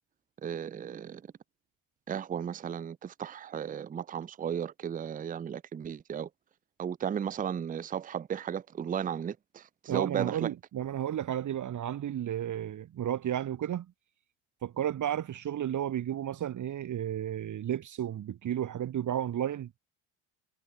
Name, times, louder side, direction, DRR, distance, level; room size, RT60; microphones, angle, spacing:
voice 1, 0.4-1.2 2.1-6.3 6.8-10.5, right 8 dB, 20° right, 0.5 m, -35 dB
voice 2, 9.9-13.9 14.6-19.7, right 10 dB, 45° right, 1.4 m, -33 dB
supercardioid pair, 75°, 42 cm